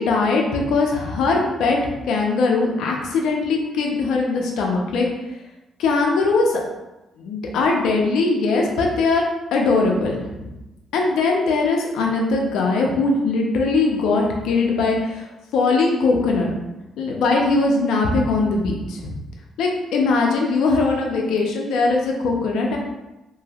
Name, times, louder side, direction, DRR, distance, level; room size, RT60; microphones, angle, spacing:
voice 1, 0.0-1.8 2.0-5.1 5.8-6.6 7.2-9.3 9.5-10.2 10.9-16.5 17.0-19.2 19.6-22.8, left 3 dB, 85° left, 0 dB, 0.6 m, -20 dB
3.1 x 2.7 x 2.4 m, 1.0 s
cardioid pair, 90°, 0 cm